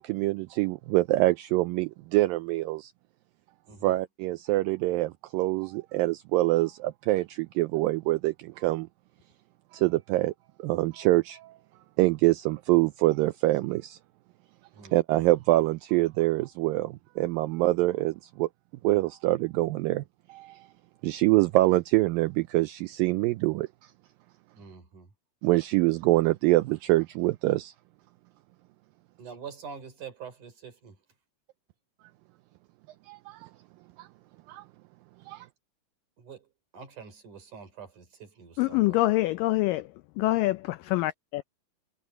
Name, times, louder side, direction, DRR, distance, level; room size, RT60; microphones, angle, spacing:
voice 1, 0.0-2.9 3.8-8.9 9.7-10.3 10.6-11.5 12.0-14.0 14.9-18.5 18.8-20.0 20.3-20.7 21.0-23.7 25.4-27.7 33.1-33.5 34.0-34.1 34.5-34.6 35.3-35.5, right 18 dB, 80° right, 2.1 m, -25 dB
voice 2, 3.7-4.0 14.7-14.9 24.5-25.1 29.2-31.0 36.2-36.5 36.7-39.0, right 6 dB, 50° right, 5.5 m, -45 dB
voice 3, 38.6-39.8 40.2-41.4, left 18 dB, 90° left, 1.9 m, -25 dB
omnidirectional pair, 4.5 m